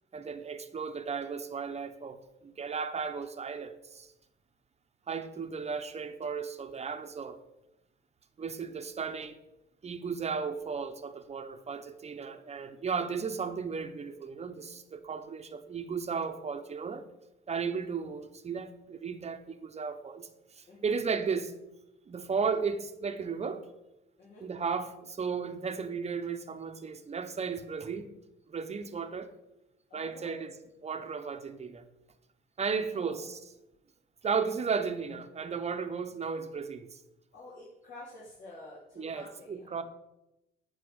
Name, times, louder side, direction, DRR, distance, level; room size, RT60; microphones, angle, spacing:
voice 1, 0.1-4.1 5.1-7.4 8.4-9.4 9.8-17.1 17.5-20.3 20.6-21.5 22.1-23.7 24.4-28.1 28.5-29.3 29.9-30.5 30.8-31.8 32.6-33.4 34.2-37.0 39.0-39.8, right 5 dB, 35° right, 0.8 m, -35 dB
voice 2, 20.6-21.0 24.2-24.5 29.9-30.5 32.9-33.3 37.3-39.8, left 2 dB, 60° left, 3.1 m, -50 dB
8.5 x 4.2 x 6.4 m
cardioid pair, 90°, 20 cm